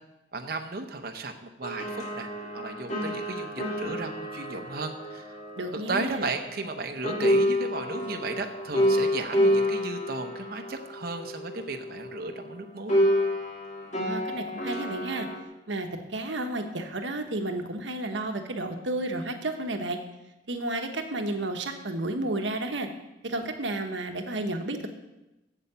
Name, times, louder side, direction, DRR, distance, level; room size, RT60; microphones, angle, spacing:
voice 1, 0.3-2.3 2.5-5.4 5.7-13.0, right 3 dB, 55° right, 5 dB, 0.8 m, -35 dB
sound 1, 1.6-6.8 7.0-12.5 12.9-15.4, equal, 40° left, 1.8 m, -29 dB
voice 2, 5.6-6.3 14.0-15.3 15.7-20.0 20.5-22.9 23.2-24.9, right 2 dB, 90° right, 5 dB, 1.2 m, -32 dB
8.3 x 7.9 x 6.8 m, 0.98 s
head